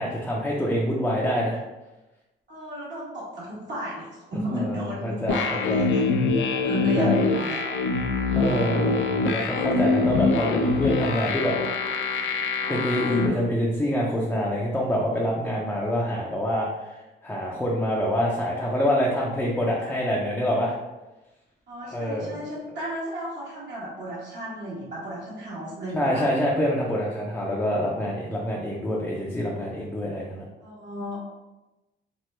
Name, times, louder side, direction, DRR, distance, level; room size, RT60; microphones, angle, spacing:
voice 1, 0.0-1.6 4.5-5.9 7.0-7.3 8.3-11.6 12.7-20.7 21.9-22.4 25.9-30.4, equal, 5° left, -4 dB, 0.5 m, -26 dB
voice 2, 2.5-6.0 6.6-7.7 8.3-9.0 21.7-26.3 30.6-31.2, right 1 dB, 60° right, -7 dB, 1.2 m, -34 dB
sound 1, 5.3-13.3, left 4 dB, 75° left, 0.5 m, -24 dB
3.0 x 2.1 x 3.1 m, 1.1 s
cardioid pair, 90°, 20 cm